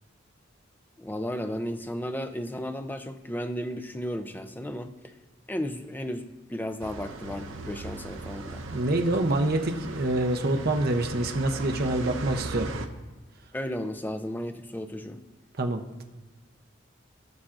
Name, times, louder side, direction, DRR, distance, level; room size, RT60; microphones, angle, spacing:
voice 1, 1.0-5.1 5.5-8.6 13.5-15.2, equal, 10° left, 8 dB, 0.5 m, -34 dB
sound 1, 6.8-12.9, right 2 dB, 90° right, 0.8 m, -38 dB
voice 2, 8.7-12.7 15.6-16.0, right 2 dB, 50° right, 5 dB, 0.7 m, -26 dB
17.5 x 5.8 x 2.5 m, 1.2 s
head